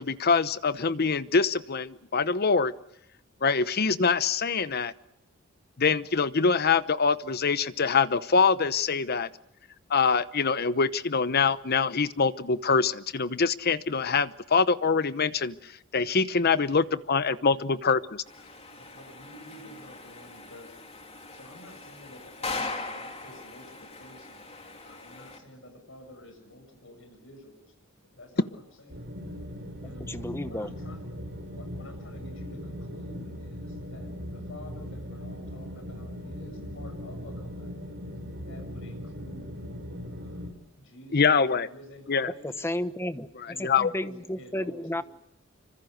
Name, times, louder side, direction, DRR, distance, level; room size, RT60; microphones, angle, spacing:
voice 1, 0.0-2.7 3.4-4.9 5.8-9.3 9.9-18.2 41.1-41.7 42.1-42.3 43.4-43.9, left 5 dB, 50° left, 14 dB, 0.9 m, -24 dB
voice 2, 16.5-16.9 17.5-17.8 18.2-18.3 18.7-24.5 24.8-27.6 28.1-29.1 29.8-38.0 38.4-39.6 40.0-42.7 43.4-45.0, left 1 dB, 65° left, 5 dB, 7.2 m, -50 dB
sound 1, 18.3-25.4, left 3 dB, 30° left, 3.2 m, -40 dB
sound 2, 28.9-40.5, equal, 55° right, 6.0 m, -39 dB
voice 3, 30.0-30.7 42.4-43.3 43.6-45.0, left 1 dB, 10° left, 11 dB, 1.1 m, -32 dB
26.5 x 25.5 x 6.6 m, 0.77 s
head